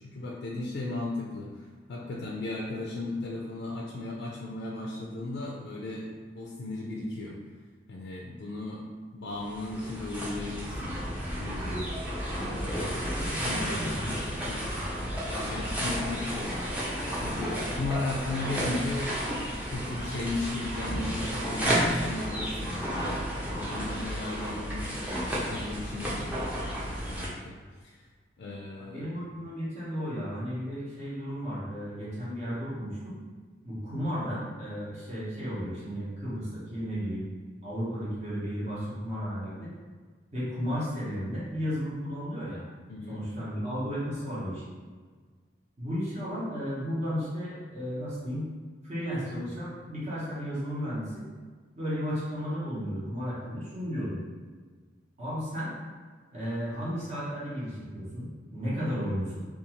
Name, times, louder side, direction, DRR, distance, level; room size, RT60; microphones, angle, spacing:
voice 1, 0.0-7.4 7.9-8.8 9.1-11.0 11.3-11.9 12.3-13.8 14.5-14.8 15.3-16.6 17.0-23.2 23.5-25.1 25.4-28.0 28.4-29.1 42.9-43.2, left 2 dB, 60° left, -3 dB, 0.3 m, -36 dB
sound 1, 9.3-27.3, equal, 10° right, 0.5 m, -32 dB
voice 2, 13.1-14.3 28.8-33.2 33.6-37.3 37.6-39.7 40.3-42.6 43.1-44.7 45.8-48.5 48.8-51.3 51.8-54.2 55.2-55.7 56.3-59.4, equal, 40° right, -8 dB, 0.9 m, -34 dB
2.5 x 2.3 x 2.9 m, 1.5 s
head